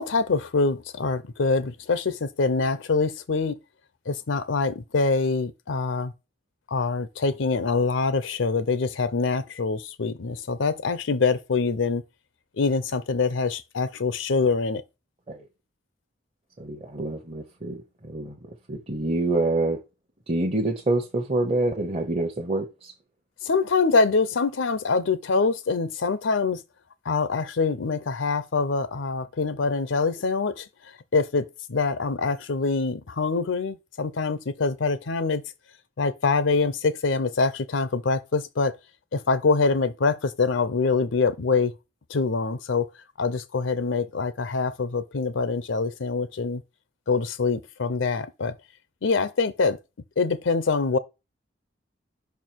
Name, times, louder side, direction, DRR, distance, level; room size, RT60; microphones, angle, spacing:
voice 1, 0.0-3.6 4.1-6.1 6.7-12.0 12.6-14.8 23.4-26.6 27.0-30.7 31.1-35.4 36.0-38.7 39.1-41.7 42.1-42.9 43.2-46.6 47.1-48.6 49.0-49.8 50.2-51.0, left 4 dB, 90° left, 0.6 m, -24 dB
voice 2, 16.6-18.4 18.7-19.8 20.3-22.9, right 2 dB, 35° right, 0.8 m, -26 dB
5.5 x 4.6 x 4.5 m
head